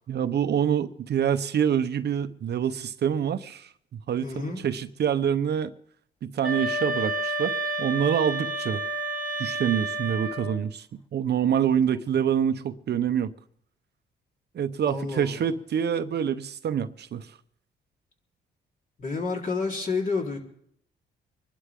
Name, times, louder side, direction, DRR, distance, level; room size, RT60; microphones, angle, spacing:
voice 1, 0.1-3.7 4.1-4.3 4.6-5.7 6.2-7.5 7.8-8.8 9.4-10.9 11.1-13.3 14.5-17.3, right 8 dB, 55° right, 0.9 m, -26 dB
voice 2, 4.2-4.6 14.8-15.5 19.0-20.4, left 4 dB, 45° left, 4.0 m, -30 dB
sound 1, 6.4-10.6, right 2 dB, 25° left, 4.2 m, -30 dB
25.0 x 11.5 x 3.7 m
cardioid pair, 90°, 20 cm